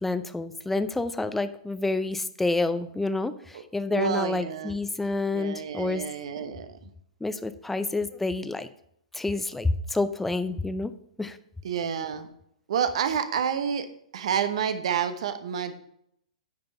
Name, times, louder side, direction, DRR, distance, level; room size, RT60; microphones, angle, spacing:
voice 1, 0.0-6.0 7.2-8.7 9.1-10.9 11.2-11.4, left 2 dB, 5° left, 11 dB, 0.5 m, -28 dB
voice 2, 3.9-4.8 5.3-6.8 11.6-12.3 12.7-13.9 14.1-15.7, right 7 dB, 55° right, 11 dB, 0.9 m, -29 dB
9.4 x 5.2 x 5.5 m, 0.72 s
figure-of-eight pair, 110°, 4 cm